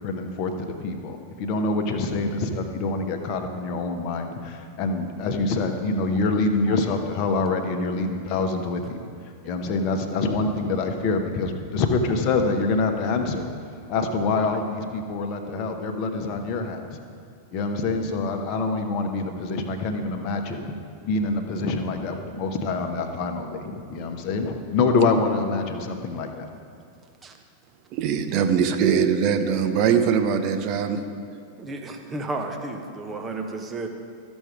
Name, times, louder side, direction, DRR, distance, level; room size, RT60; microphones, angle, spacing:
voice 1, 0.0-9.0 9.4-13.5 13.9-17.0 17.5-20.7 21.0-26.5, left 3 dB, 40° left, 4 dB, 1.0 m, -26 dB
voice 2, 27.9-31.0, right 7 dB, 40° right, 7 dB, 0.7 m, -22 dB
voice 3, 31.6-33.9, right 2 dB, 20° right, 4 dB, 1.0 m, -32 dB
13.5 x 6.2 x 4.9 m, 2.3 s
figure-of-eight pair, 90°, 0 cm